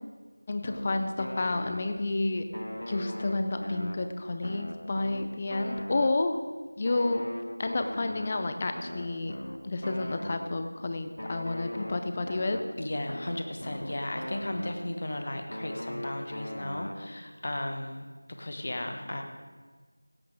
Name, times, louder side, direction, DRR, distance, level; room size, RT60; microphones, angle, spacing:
voice 1, 0.5-2.4 2.9-6.4 6.8-7.2 7.6-9.3 9.6-12.6, left 2 dB, 20° left, 7 dB, 0.6 m, -30 dB
sound 1, 0.6-2.2 2.5-6.5 6.9-10.7 11.2-15.1 15.5-17.3, left 1 dB, 80° left, 0.8 m, -40 dB
voice 2, 12.8-18.0 18.4-19.2, left 1 dB, 35° left, 5 dB, 1.3 m, -35 dB
16.5 x 8.4 x 4.9 m, 1.4 s
figure-of-eight pair, 175°, 0 cm